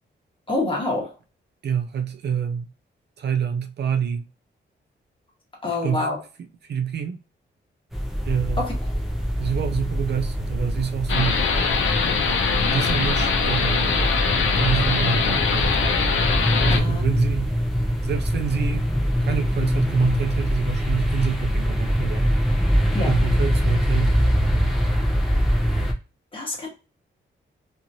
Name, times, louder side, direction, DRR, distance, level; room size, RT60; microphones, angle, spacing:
voice 1, 0.5-1.1 5.6-6.2 8.6-8.7 16.7-17.0 22.9-23.1 26.3-26.7, left 2 dB, 25° left, 1.2 m, -26 dB
voice 2, 1.6-2.7 3.2-4.3 5.7-6.1 6.6-7.2 8.2-8.7 9.4-11.4 12.7-13.9 14.6-15.9 16.6-17.6 18.0-18.9 19.2-22.3 23.1-24.2, right 8 dB, 60° right, 0.4 m, -27 dB
sound 1, 7.9-25.9, equal, ahead, 0.6 m, -23 dB
sound 2, 11.1-16.8, left 5 dB, 85° left, 0.6 m, -22 dB
2.9 x 2.5 x 2.6 m
wide cardioid pair, 150°, 20 cm